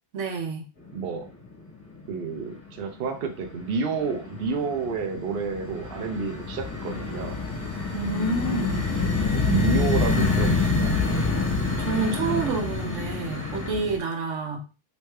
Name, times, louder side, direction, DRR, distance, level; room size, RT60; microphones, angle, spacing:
voice 1, 0.1-0.6 7.9-8.9 11.5-14.6, right 4 dB, 85° right, 3 dB, 1.2 m, -29 dB
sound 1, 0.9-1.4 1.7-2.5 2.8-14.0, left 3 dB, 45° left, 1.6 m, -27 dB
voice 2, 0.9-1.3 2.1-7.4 9.3-11.0, right 5 dB, 60° right, 4 dB, 0.8 m, -30 dB
3.2 x 3.1 x 3.2 m, 0.32 s
omnidirectional pair, 1.2 m